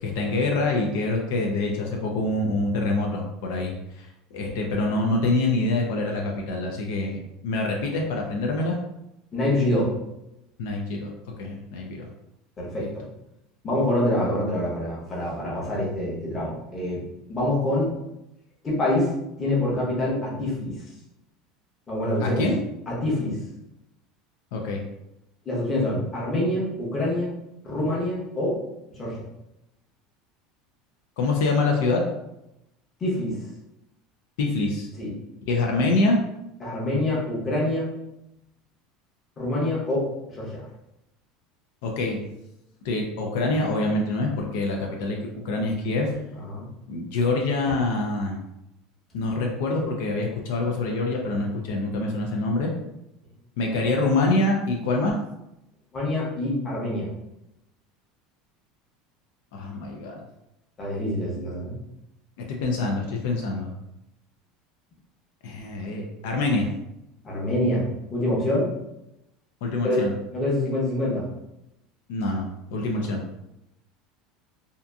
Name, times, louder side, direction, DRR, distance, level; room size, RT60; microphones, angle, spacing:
voice 1, 0.0-4.1 4.3-8.8 10.6-11.1 11.4-12.1 12.7-12.9 22.2-22.6 24.5-24.8 31.2-32.0 34.4-34.9 35.5-36.2 41.8-42.2 42.8-45.2 45.4-46.2 46.9-48.4 49.1-52.7 53.6-55.2 59.5-60.2 62.4-63.7 65.4-66.7 69.6-70.1 72.1-73.2, left 2 dB, 75° left, 1 dB, 0.5 m, -25 dB
voice 2, 9.3-9.9 12.6-13.0 13.6-17.0 17.3-17.9 18.6-19.1 19.4-20.7 21.9-22.4 22.9-23.4 25.5-27.3 27.6-28.6 28.9-29.2 33.0-33.4 35.0-35.1 36.6-37.9 39.4-40.6 46.3-46.6 55.9-57.1 60.8-61.7 67.2-67.8 68.1-68.7 69.8-70.0 70.3-71.3, left 1 dB, 20° left, -5 dB, 0.8 m, -26 dB
2.7 x 2.5 x 2.3 m, 0.88 s
supercardioid pair, 150°, 0 cm